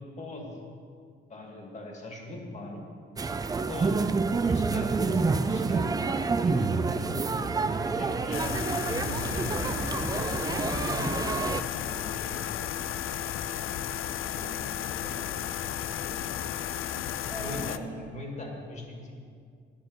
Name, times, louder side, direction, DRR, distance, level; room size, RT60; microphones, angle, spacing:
voice 1, 0.2-0.6 1.3-2.8 3.7-9.8 10.7-11.5 11.8-12.6 17.4-19.1, left 1 dB, 35° left, 0 dB, 2.2 m, -40 dB
sound 1, 3.2-11.6, right 4 dB, 20° right, 0.4 m, -28 dB
sound 2, 8.3-17.8, left 10 dB, 80° left, 0.5 m, -33 dB
voice 2, 14.2-15.5 16.0-16.2 17.3-18.0, right 1 dB, ahead, -3 dB, 1.0 m, -44 dB
9.9 x 9.8 x 6.4 m, 2.2 s
cardioid pair, 145°, 20 cm